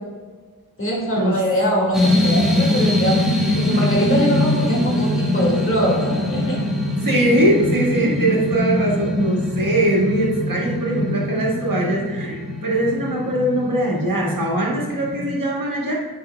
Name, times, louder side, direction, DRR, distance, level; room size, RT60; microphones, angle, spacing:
voice 1, 0.8-3.2 3.6-6.6, equal, 35° left, -3 dB, 1.9 m, -22 dB
sound 1, 1.9-15.4, left 1 dB, ahead, 1.2 m, -22 dB
voice 2, 7.0-15.9, right 1 dB, 60° right, -3 dB, 1.7 m, -21 dB
8.3 x 5.8 x 2.2 m, 1.4 s
wide cardioid pair, 80°, 38 cm